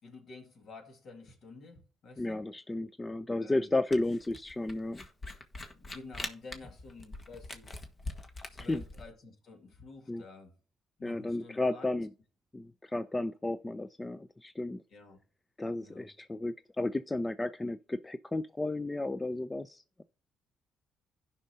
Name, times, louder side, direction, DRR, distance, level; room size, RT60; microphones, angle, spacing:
voice 1, 0.0-2.4 3.4-3.7 5.7-7.8 8.5-10.5 11.0-11.9 14.9-15.2 15.8-16.1, left 3 dB, 60° left, 2.1 m, -51 dB
voice 2, 2.2-5.0 8.6-8.8 10.1-10.2 11.0-12.1 12.5-14.8 15.6-20.0, left 2 dB, 15° left, 0.4 m, -33 dB
Camera, 3.9-9.1, left 2 dB, 35° left, 1.3 m, -43 dB
16.5 x 5.5 x 2.7 m
cardioid pair, 90°, 0 cm